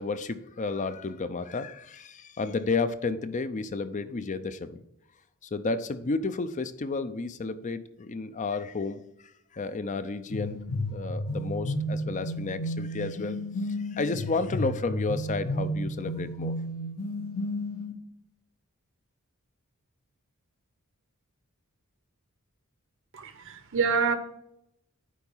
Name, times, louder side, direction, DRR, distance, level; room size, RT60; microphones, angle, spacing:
voice 1, 0.0-4.8 5.4-9.0 9.5-10.6 10.9-13.4 13.9-16.6, left 3 dB, 35° left, 11 dB, 0.5 m, -31 dB
sound 1, 10.3-17.9, equal, 80° left, 1.2 m, -32 dB
voice 2, 23.1-24.1, right 5 dB, 60° right, 9 dB, 1.0 m, -27 dB
9.3 x 4.0 x 5.5 m, 0.78 s
head